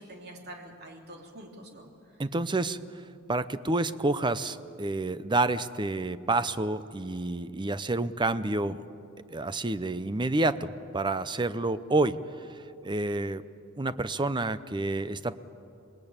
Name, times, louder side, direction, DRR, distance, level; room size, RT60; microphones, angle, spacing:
voice 1, 0.0-2.2, right 1 dB, 50° right, 1 dB, 3.3 m, -46 dB
voice 2, 2.2-2.8 3.3-8.8 9.3-12.2 12.8-13.4 13.8-15.4, right 2 dB, 20° right, 14 dB, 0.7 m, -29 dB
26.0 x 19.5 x 8.9 m, 2.7 s
head